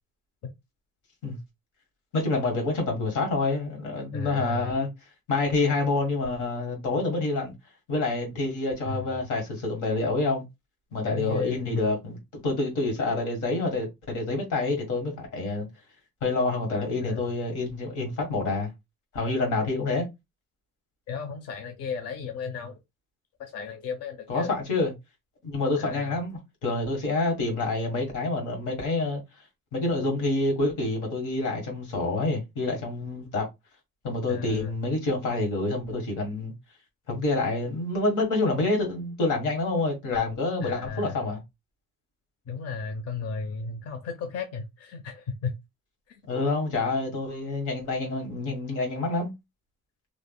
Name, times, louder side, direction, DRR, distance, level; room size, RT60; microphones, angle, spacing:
voice 1, 2.1-4.9 5.3-7.5 7.9-10.4 10.9-15.7 16.2-18.7 19.1-20.1 24.3-24.9 25.4-29.2 29.7-33.5 34.0-36.5 37.1-41.4 46.3-49.3, left 2 dB, 85° left, 1.5 m, -27 dB
voice 2, 4.1-4.7 8.9-9.1 11.0-11.8 17.0-17.2 21.1-22.8 23.4-24.5 25.8-26.2 34.3-34.7 40.6-41.2 42.5-45.5 46.1-46.2, left 5 dB, 55° left, 0.6 m, -34 dB
3.3 x 2.4 x 2.2 m
cardioid pair, 90°, 30 cm